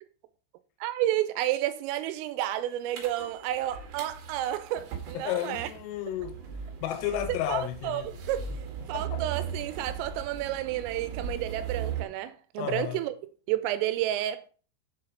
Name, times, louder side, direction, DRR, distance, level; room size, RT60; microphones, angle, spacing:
voice 1, 0.8-5.7 7.3-8.5 8.9-13.1 13.5-14.5, right 13 dB, 85° right, 3.4 m, -31 dB
sound 1, 2.9-12.0, right 7 dB, 60° right, 3.1 m, -38 dB
voice 2, 5.2-6.4 6.8-8.1 8.9-9.2 12.6-13.0, left 11 dB, 85° left, 3.5 m, -32 dB
7.5 x 6.8 x 5.7 m
omnidirectional pair, 5.8 m